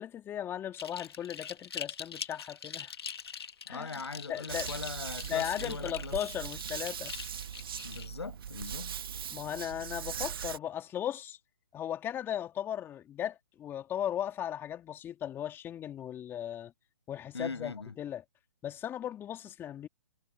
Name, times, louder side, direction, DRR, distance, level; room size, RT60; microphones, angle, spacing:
voice 1, 0.0-2.9 3.7-4.0 4.3-4.7 5.2-7.1 9.3-11.4 11.7-16.7 17.1-18.2 18.6-19.9, left 10 dB, 15° left, 2.6 m, -37 dB
sound 1, 0.7-8.1, left 7 dB, 70° left, 2.1 m, -43 dB
voice 2, 3.7-6.2 7.8-8.9 17.3-17.9, left 4 dB, 85° left, 6.4 m, -40 dB
sound 2, 4.5-10.6, right 8 dB, 60° right, 1.2 m, -40 dB
hypercardioid pair, 135°, 14 cm